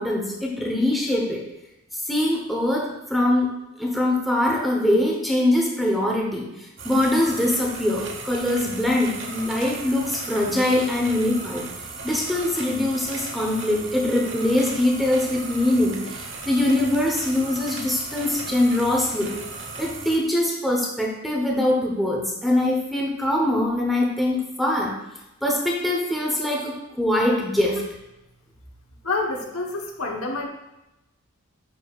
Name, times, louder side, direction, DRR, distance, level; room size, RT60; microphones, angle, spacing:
voice 1, 0.0-1.4 2.1-3.5 3.8-6.5 6.8-11.6 12.0-19.3 19.8-25.0 25.4-27.8, left 1 dB, ahead, -2 dB, 0.9 m, -23 dB
sound 1, 6.8-20.2, right 3 dB, 60° right, 1.0 m, -36 dB
voice 2, 29.0-30.5, left 3 dB, 80° left, 1 dB, 1.1 m, -27 dB
9.6 x 5.6 x 2.4 m, 0.93 s
head